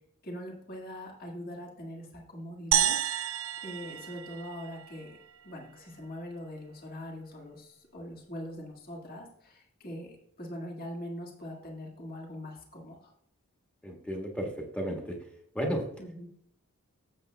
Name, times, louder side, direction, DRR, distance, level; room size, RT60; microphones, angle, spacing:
voice 1, 0.2-3.0 3.6-5.2 5.4-13.1 16.0-16.3, equal, 40° left, 0 dB, 1.8 m, -42 dB
sound 1, 2.7-5.2, right 10 dB, 70° right, 0.5 m, -30 dB
voice 2, 13.8-15.2 15.5-15.9, equal, 5° left, 1 dB, 1.4 m, -33 dB
15.0 x 7.2 x 2.2 m, 0.72 s
head